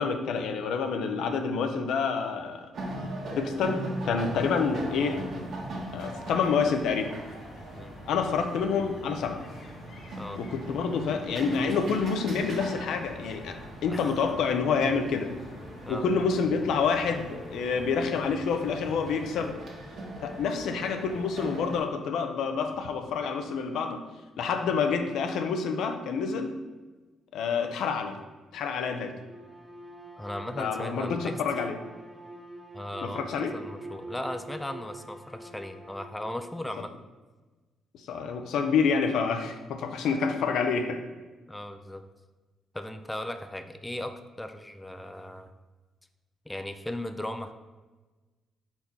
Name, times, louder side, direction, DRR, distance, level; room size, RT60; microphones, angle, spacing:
voice 1, 0.0-2.7 3.3-5.2 5.9-7.1 8.1-9.4 10.4-15.3 15.9-19.5 20.2-24.0 24.4-26.5 27.3-28.2 28.5-29.1 30.6-31.8 33.0-33.6 38.1-41.0, left 5 dB, 80° left, 6 dB, 0.7 m, -28 dB
sound 1, 2.7-21.8, right 1 dB, 60° right, 1.5 m, -40 dB
sound 2, 4.2-19.5, equal, 55° left, 1.1 m, -47 dB
Bowed string instrument, 29.2-36.7, right 1 dB, 10° right, 1.1 m, -45 dB
voice 2, 30.2-31.4 32.7-36.9 41.5-42.0 42.7-45.5 46.5-47.5, left 1 dB, 10° left, 8 dB, 0.4 m, -37 dB
4.5 x 4.4 x 5.4 m, 1.2 s
cardioid pair, 90°, 0 cm